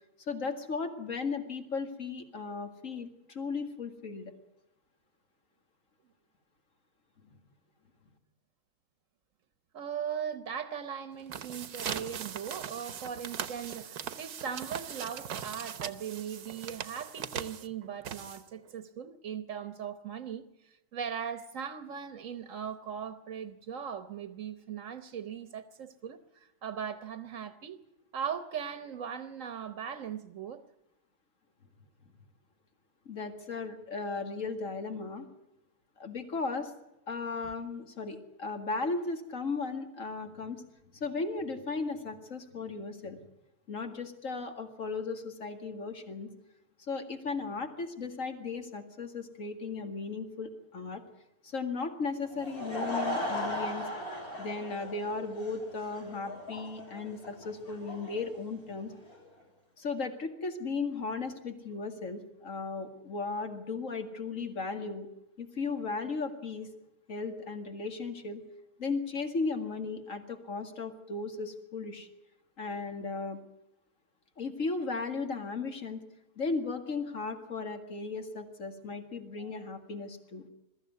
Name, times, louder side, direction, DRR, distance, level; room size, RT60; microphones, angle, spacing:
voice 1, 0.2-4.3 33.1-35.3 36.0-36.7 37.1-40.6 40.9-43.2 43.7-46.3 46.9-51.0 51.4-53.9 54.4-58.9 59.8-65.1 65.4-66.7 67.1-68.4 68.8-72.1 72.6-73.4 74.4-76.0 76.4-80.5, left 4 dB, 60° left, 2.4 m, -36 dB
voice 2, 9.7-20.4 20.9-27.8 28.1-30.6 79.4-79.5, right 8 dB, 60° right, 1.3 m, -39 dB
sound 1, 11.1-18.7, right 8 dB, 85° right, 1.5 m, -40 dB
Laughter / Crowd, 52.2-59.2, equal, 80° left, 7.9 m, -38 dB
22.0 x 14.0 x 9.4 m
omnidirectional pair, 1.6 m